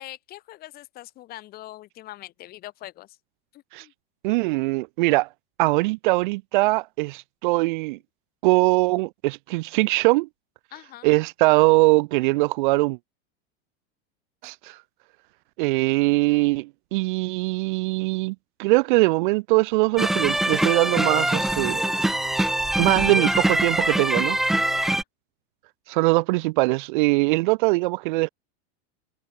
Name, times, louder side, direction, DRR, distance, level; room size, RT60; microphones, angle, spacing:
voice 1, 0.0-3.2 3.5-3.9 10.7-11.1 24.7-25.0, left 15 dB, 30° left, 7.9 m, -42 dB
voice 2, 4.2-5.3 5.6-8.0 8.4-10.3 11.0-13.0 14.4-14.8 15.6-21.8 22.8-24.4 25.9-28.3, right 23 dB, 50° right, 1.4 m, -22 dB
sound 1, 20.0-25.0, right 1 dB, ahead, 0.4 m, -23 dB
supercardioid pair, 175°, 32 cm